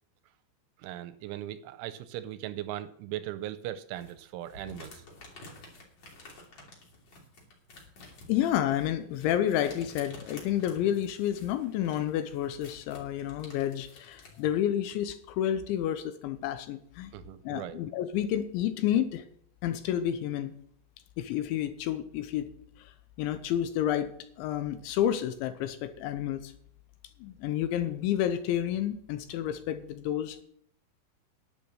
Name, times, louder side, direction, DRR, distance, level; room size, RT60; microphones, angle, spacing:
voice 1, 0.8-5.0 17.1-17.8, right 13 dB, 85° right, 13 dB, 2.9 m, -39 dB
sound 1, 3.9-14.4, left 2 dB, 40° left, 3.5 m, -51 dB
voice 2, 8.3-17.1 17.4-19.2 19.6-20.5 21.2-22.5 22.8-22.9 23.2-24.1 24.4-26.5 27.2-30.4, left 11 dB, 80° left, 10 dB, 2.9 m, -30 dB
11.0 x 8.9 x 6.3 m, 0.64 s
omnidirectional pair, 5.7 m